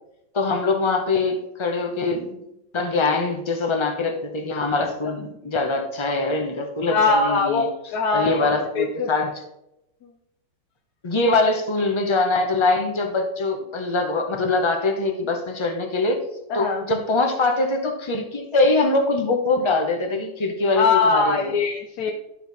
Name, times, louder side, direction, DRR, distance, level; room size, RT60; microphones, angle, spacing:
voice 1, 0.3-2.4 2.7-7.7 8.1-9.3 11.0-16.2 16.5-20.8 21.1-21.5, left 3 dB, 30° left, 4 dB, 0.5 m, -23 dB
voice 2, 6.9-9.1 10.0-10.1 16.5-16.9 20.7-22.1, left 4 dB, 65° left, 1 dB, 1.1 m, -22 dB
11.5 x 4.5 x 4.1 m, 0.87 s
omnidirectional pair, 2.0 m